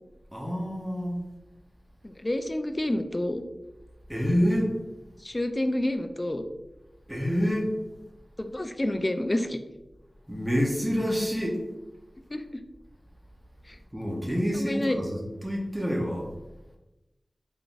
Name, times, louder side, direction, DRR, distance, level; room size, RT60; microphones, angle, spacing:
voice 1, 0.3-1.2 4.1-4.8 7.1-7.8 10.3-11.6 13.9-16.3, equal, 10° right, -1 dB, 0.8 m, -27 dB
voice 2, 2.0-3.4 5.2-6.4 8.4-9.6 12.3-12.6 13.7-13.8 14.6-15.0, left 1 dB, 30° left, 8 dB, 0.3 m, -28 dB
3.9 x 3.4 x 2.5 m, 1.0 s
wide cardioid pair, 85°, 0 cm